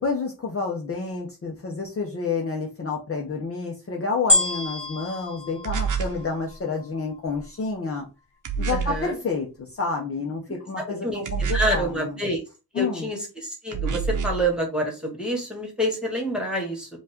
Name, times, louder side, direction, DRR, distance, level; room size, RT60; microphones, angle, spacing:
voice 1, 0.0-8.1 8.6-12.2 12.7-13.1, left 4 dB, 35° left, 0 dB, 0.8 m, -29 dB
sound 1, 4.3-6.7 7.3-7.4, left 1 dB, 15° left, 1.8 m, -26 dB
sound 2, 5.6-6.2 8.5-9.0 11.3-11.9 13.7-14.5, right 5 dB, 55° right, 0.8 m, -27 dB
voice 2, 8.7-9.1 11.0-12.4 12.7-13.2 13.6-16.9, right 1 dB, ahead, 0 dB, 1.6 m, -27 dB
5.3 x 2.4 x 3.6 m, 0.30 s
wide cardioid pair, 145°, 38 cm